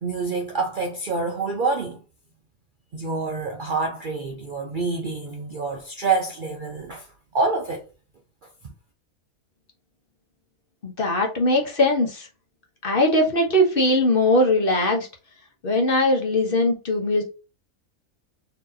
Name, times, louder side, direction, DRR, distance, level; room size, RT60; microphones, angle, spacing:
voice 1, 0.0-2.0 2.9-7.1 7.3-7.9, right 3 dB, 55° right, 0.6 m, -27 dB
voice 2, 10.8-12.3 12.8-15.1 15.6-17.2, left 1 dB, 45° left, 1.0 m, -20 dB
4.2 x 2.9 x 2.6 m
omnidirectional pair, 1.5 m